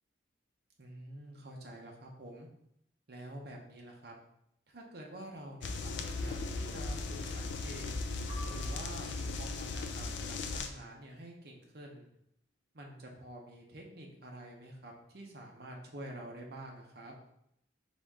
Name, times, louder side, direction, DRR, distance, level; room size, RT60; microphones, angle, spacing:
voice 1, 0.8-2.5 3.1-4.1 4.7-7.9 8.5-12.1 12.7-17.2, right 1 dB, 60° right, 0 dB, 0.8 m, -48 dB
sound 1, 5.6-10.7, left 3 dB, 80° left, 0.4 m, -37 dB
sound 2, 8.3-9.6, right 1 dB, 55° left, 1.6 m, -52 dB
4.1 x 3.1 x 3.6 m, 0.76 s
head